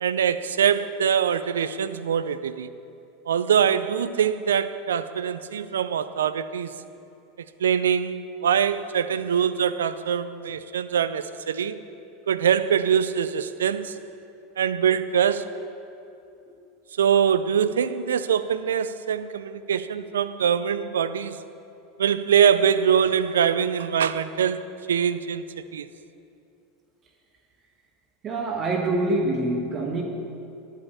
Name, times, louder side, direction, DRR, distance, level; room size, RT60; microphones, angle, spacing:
voice 1, 0.0-2.7 3.3-6.7 7.6-11.8 12.3-13.9 14.6-15.7 17.0-21.4 22.0-25.9, right 8 dB, 80° right, 13 dB, 0.4 m, -23 dB
voice 2, 28.2-30.0, right 2 dB, 35° right, 2 dB, 1.3 m, -25 dB
11.0 x 5.5 x 8.3 m, 2.7 s
hypercardioid pair, 85°, 0 cm